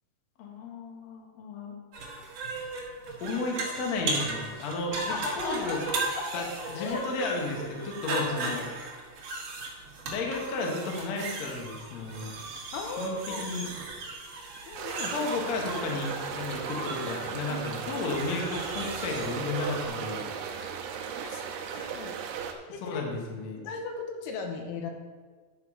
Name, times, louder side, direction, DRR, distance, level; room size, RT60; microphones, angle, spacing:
voice 1, 0.4-1.7 3.2-5.8 6.3-8.6 10.0-12.3 13.0-13.7 15.0-20.3 22.8-23.6, left 3 dB, 60° left, 0 dB, 1.9 m, -33 dB
sound 1, 1.9-19.9, right 3 dB, 60° right, 2.7 m, -37 dB
voice 2, 5.1-5.8 6.2-6.3 6.8-7.0 8.1-8.7 12.7-13.4 14.7-15.2 21.2-22.2 22.7-23.0 23.6-24.9, left 4 dB, 80° left, 3 dB, 2.8 m, -37 dB
sound 2, 14.8-22.5, right 7 dB, 85° right, 2.8 m, -36 dB
10.5 x 5.8 x 4.8 m, 1.5 s
omnidirectional pair, 4.8 m